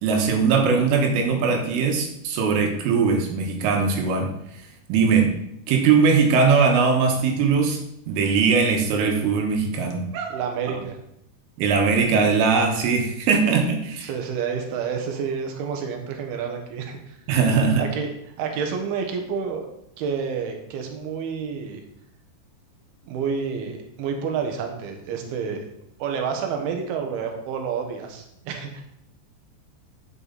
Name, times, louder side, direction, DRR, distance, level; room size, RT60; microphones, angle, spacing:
voice 1, 0.0-4.3 4.9-5.4 5.7-7.8 8.1-10.0 11.6-14.1 17.3-17.8, right 5 dB, 90° right, 3 dB, 3.9 m, -20 dB
voice 2, 10.1-11.0 14.0-17.2 17.8-18.1 18.4-19.6 20.0-21.8 23.1-25.7 26.0-28.8, right 6 dB, 65° right, 3 dB, 2.8 m, -29 dB
9.0 x 7.5 x 4.1 m, 0.77 s
omnidirectional pair, 5.6 m